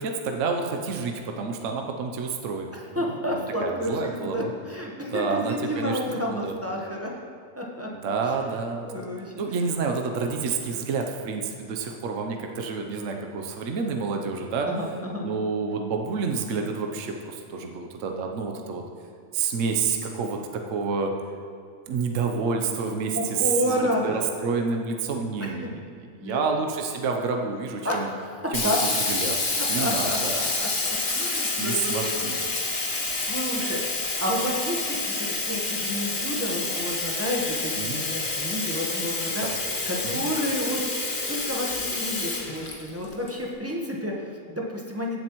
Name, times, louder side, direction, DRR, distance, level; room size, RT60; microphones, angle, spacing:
voice 1, 0.0-2.7 3.0-4.5 5.1-6.0 6.3-6.6 7.9-8.8 9.4-14.7 15.2-18.8 19.3-21.1 21.9-28.1 28.5-29.4 29.7-30.4 31.6-32.4 37.8-38.1 39.3-39.5 40.0-40.3, right 5 dB, 65° right, 3 dB, 1.1 m, -29 dB
voice 2, 2.7-7.1 7.6-8.1 8.8-9.3 14.6-15.3 23.1-24.2 25.4-25.7 26.2-26.4 27.8-28.4 28.6-28.8 29.6-39.5 39.9-40.8 41.3-45.2, left 1 dB, 10° right, -3 dB, 0.9 m, -31 dB
Sink (filling or washing), 28.5-43.3, left 3 dB, 40° left, 1.2 m, -28 dB
15.5 x 7.5 x 3.0 m, 2.4 s
omnidirectional pair, 1.5 m